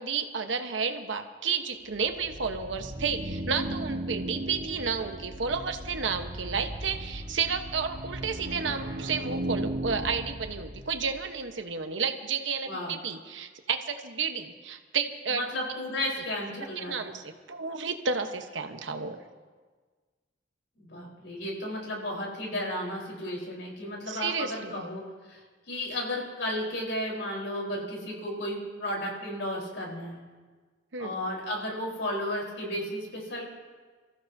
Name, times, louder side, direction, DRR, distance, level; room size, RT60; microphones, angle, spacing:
voice 1, 0.0-15.4 16.9-19.2 24.1-24.8 30.9-31.1, right 5 dB, 90° right, 6 dB, 1.1 m, -31 dB
sound 1, 1.9-11.3, right 1 dB, 70° right, 1.4 m, -36 dB
voice 2, 15.3-17.1 20.8-25.0 25.3-25.4 25.7-30.2 31.0-33.4, left 1 dB, 85° left, -2 dB, 4.2 m, -33 dB
28.5 x 15.0 x 2.8 m, 1.4 s
head